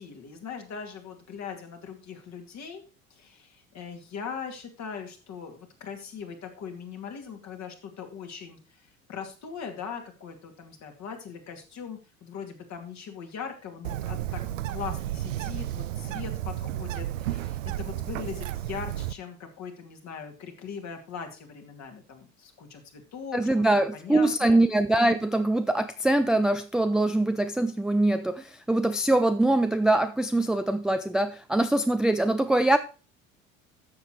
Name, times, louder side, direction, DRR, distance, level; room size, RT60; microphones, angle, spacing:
voice 1, 0.0-2.8 3.1-24.6, left 6 dB, 40° left, 2.5 m, -40 dB
Bird, 13.8-19.1, right 13 dB, 65° right, 0.6 m, -32 dB
voice 2, 23.3-32.8, right 1 dB, ahead, 0.4 m, -23 dB
13.0 x 7.3 x 3.1 m
figure-of-eight pair, 65°, 41 cm